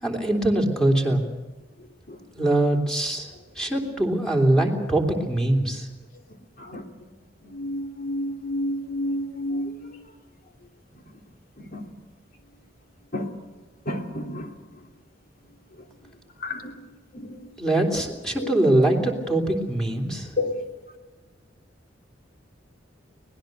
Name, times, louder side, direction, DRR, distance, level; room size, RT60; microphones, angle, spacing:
voice 1, 0.0-1.2 2.3-3.3 3.6-5.9 17.6-20.3, right 1 dB, 5° left, 1 dB, 3.3 m, -22 dB
voice 2, 7.5-9.9 11.7-11.8 13.1-13.3 13.9-14.5 16.4-16.7 17.1-17.3 18.4-18.5 20.4-20.5, left 1 dB, 55° left, 3 dB, 3.0 m, -29 dB
24.5 x 19.0 x 6.8 m, 1.2 s
head